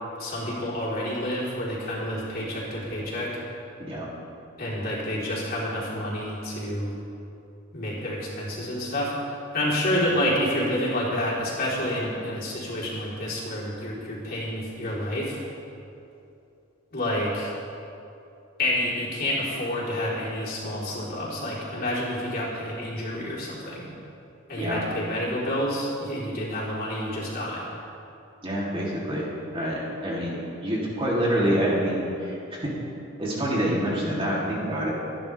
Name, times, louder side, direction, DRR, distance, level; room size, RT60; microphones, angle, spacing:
voice 1, 0.2-3.3 4.6-7.0 7.7-9.1 9.5-15.4 16.9-17.5 18.6-23.8 24.5-27.7, left 1 dB, 50° left, -7 dB, 4.1 m, -29 dB
voice 2, 28.4-32.7 33.2-35.0, equal, 25° right, -6 dB, 3.2 m, -27 dB
24.5 x 11.0 x 3.5 m, 2.7 s
head